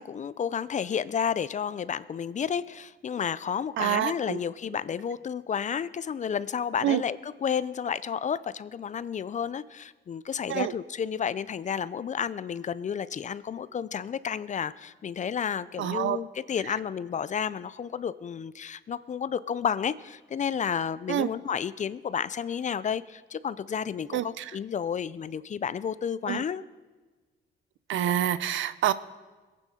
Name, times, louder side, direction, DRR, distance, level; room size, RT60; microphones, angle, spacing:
voice 1, 0.0-26.6, left 7 dB, 40° left, 16 dB, 0.5 m, -31 dB
voice 2, 3.8-4.4 6.8-7.0 10.5-10.7 15.8-16.2 21.1-21.3 24.1-24.4 26.3-26.4 27.9-28.9, right 11 dB, 75° right, 15 dB, 0.6 m, -27 dB
21.5 x 9.1 x 4.3 m, 1.3 s
cardioid pair, 90°, 20 cm